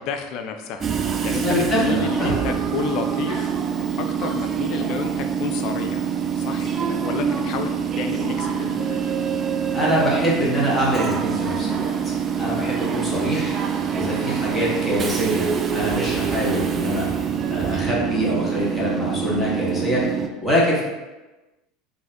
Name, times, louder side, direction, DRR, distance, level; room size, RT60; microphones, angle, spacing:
voice 1, 0.0-3.5 4.0-7.7 8.0-9.4, left 7 dB, 50° left, 6 dB, 0.4 m, -31 dB
Train / Subway metro underground, 0.8-20.3, right 7 dB, 30° right, 0.3 m, -25 dB
voice 2, 1.3-2.4 9.7-11.9 12.4-13.6 13.9-17.1 17.5-20.0 20.4-20.8, equal, 5° left, -7 dB, 1.4 m, -24 dB
3.3 x 2.6 x 3.4 m, 1.1 s
figure-of-eight pair, 70°, 0 cm